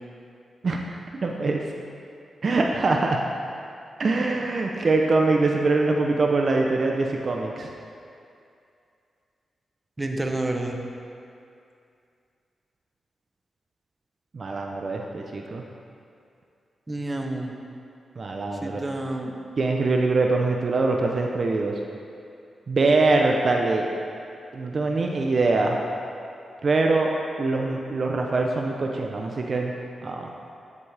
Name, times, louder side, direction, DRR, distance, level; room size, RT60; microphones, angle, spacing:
voice 1, 1.2-1.6 2.4-3.2 4.0-7.7 14.3-15.6 18.2-18.8 19.6-21.8 22.7-23.9 24.5-25.8 26.6-27.1 27.4-29.7 30.0-30.3, right 3 dB, 50° right, 1 dB, 0.7 m, -23 dB
voice 2, 10.0-10.8 16.9-17.5 18.6-19.3, right 2 dB, 25° right, 2 dB, 0.9 m, -29 dB
9.8 x 8.3 x 3.4 m, 2.5 s
cardioid pair, 80°, 0 cm